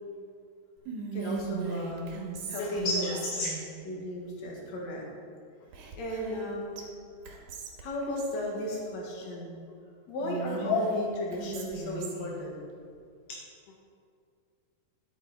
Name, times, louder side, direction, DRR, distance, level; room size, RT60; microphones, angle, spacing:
Whispering, 0.9-3.7 5.7-6.5 6.8-6.9 7.2-8.4 10.2-12.4, right 5 dB, 70° right, 2.7 m, -38 dB
voice 1, 1.1-2.1 2.5-3.2 3.8-5.1 6.0-6.8 7.8-9.6 10.1-12.6, left 1 dB, 55° left, -2 dB, 2.8 m, -35 dB
voice 2, 2.6-3.5 10.6-11.0, left 3 dB, 75° left, 1 dB, 2.3 m, -29 dB
12.5 x 8.9 x 4.2 m, 2.3 s
omnidirectional pair, 4.0 m